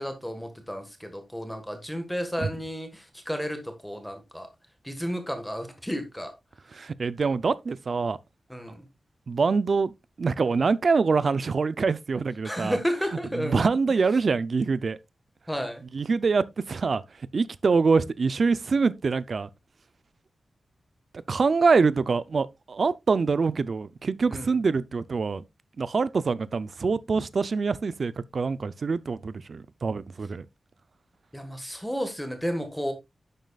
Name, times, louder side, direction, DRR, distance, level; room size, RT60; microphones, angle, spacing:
voice 1, 0.0-4.5 4.8-6.3 8.5-8.8 12.4-13.6 15.5-15.8 24.3-24.5 31.3-32.9, equal, ahead, 1.5 m, -32 dB
voice 2, 6.7-8.2 9.3-9.9 10.2-12.8 13.3-15.0 15.9-17.0 17.3-19.5 21.1-25.4 25.8-30.4, right 4 dB, 45° right, 0.5 m, -25 dB
11.0 x 7.4 x 2.4 m
wide cardioid pair, 175°, 0 cm